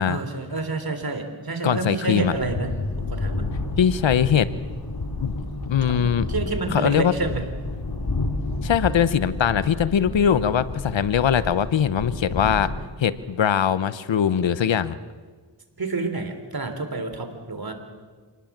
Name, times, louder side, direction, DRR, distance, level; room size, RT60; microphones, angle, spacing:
voice 1, 0.1-2.7 3.0-3.5 5.9-6.0 6.3-7.4 15.8-17.7, right 3 dB, 55° right, 7 dB, 3.5 m, -28 dB
voice 2, 1.6-2.3 3.8-4.5 5.2-5.3 5.6-6.3 6.7-7.1 8.6-12.7 13.0-15.0, left 8 dB, 85° left, 15 dB, 1.0 m, -21 dB
sound 1, 2.2-12.9, left 2 dB, 55° left, 2.8 m, -30 dB
27.0 x 19.5 x 7.4 m, 1.5 s
wide cardioid pair, 65°, 44 cm